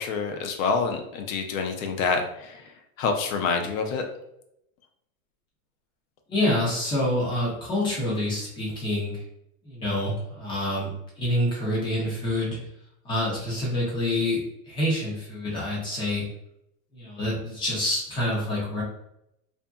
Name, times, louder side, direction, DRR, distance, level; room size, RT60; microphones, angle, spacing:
voice 1, 0.0-2.7 3.0-4.0, left 4 dB, 60° left, 4 dB, 0.6 m, -27 dB
voice 2, 6.3-9.2 9.6-10.9 11.2-12.6 13.0-14.4 14.7-16.2 16.9-18.8, left 1 dB, 10° left, -4 dB, 0.4 m, -27 dB
2.6 x 2.6 x 2.3 m, 0.80 s
supercardioid pair, 145°, 45 cm